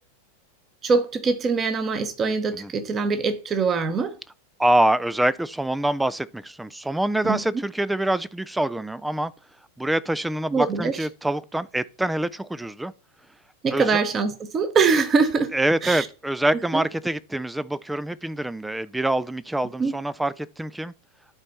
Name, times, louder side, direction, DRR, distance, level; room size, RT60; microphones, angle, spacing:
voice 1, 0.8-4.2 7.2-7.4 10.5-11.0 13.6-15.5 15.8-16.1 16.5-16.8 19.8-19.9, right 4 dB, 25° right, 1.2 m, -23 dB
voice 2, 4.6-9.3 9.8-12.9 13.7-14.0 15.5-20.9, right 1 dB, 5° right, 0.4 m, -25 dB
12.0 x 4.3 x 4.1 m
figure-of-eight pair, 90°, 0 cm